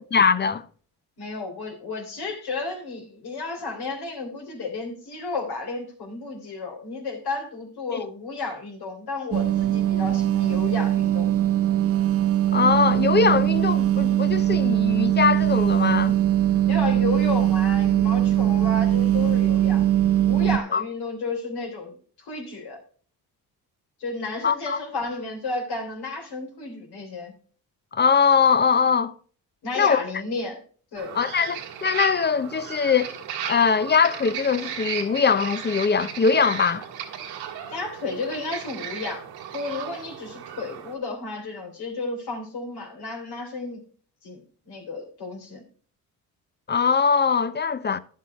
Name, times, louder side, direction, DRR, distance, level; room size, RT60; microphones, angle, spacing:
voice 1, 0.1-0.6 7.9-8.0 12.5-16.1 20.7-20.8 24.4-24.8 27.9-29.1 29.8-30.0 31.1-33.1 33.5-36.9 46.7-48.0, left 6 dB, 25° left, 0.7 m, -21 dB
voice 2, 1.2-11.3 16.7-19.8 20.2-22.8 24.0-27.3 29.6-30.6 30.9-31.1 37.7-43.8 44.2-45.6, left 3 dB, 75° left, 3.4 m, -32 dB
sound 1, 9.3-20.6, right 12 dB, 35° right, 0.8 m, -21 dB
sound 2, 31.0-40.9, right 9 dB, 85° right, 1.8 m, -35 dB
10.5 x 7.4 x 4.2 m
supercardioid pair, 70°, 39 cm